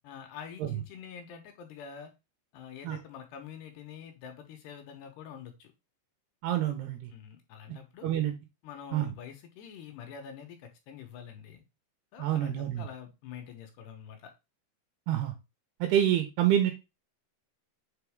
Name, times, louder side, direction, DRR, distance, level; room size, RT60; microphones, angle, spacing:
voice 1, 0.0-2.1 2.5-5.7 7.1-8.1 8.6-11.6 12.1-14.3, left 8 dB, 75° left, 4 dB, 2.9 m, -46 dB
voice 2, 6.4-7.1 8.0-8.3 8.9-9.1 12.2-12.9 15.1-15.3 15.8-16.7, right 11 dB, 80° right, 6 dB, 2.5 m, -27 dB
7.1 x 4.0 x 3.5 m, 0.25 s
omnidirectional pair, 5.3 m